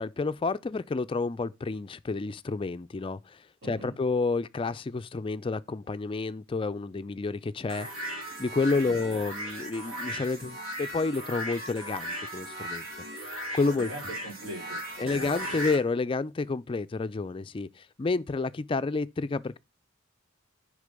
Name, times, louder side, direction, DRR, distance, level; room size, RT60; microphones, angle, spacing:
voice 1, 0.0-7.9 8.4-12.9 13.5-13.9 15.0-19.6, left 3 dB, 25° left, 0.3 m, -30 dB
voice 2, 3.6-3.9 8.8-9.2 13.7-15.5, right 1 dB, 60° right, 4.1 m, -42 dB
sound 1, 7.7-15.8, equal, 80° right, 3.0 m, -37 dB
6.6 x 5.3 x 5.1 m
head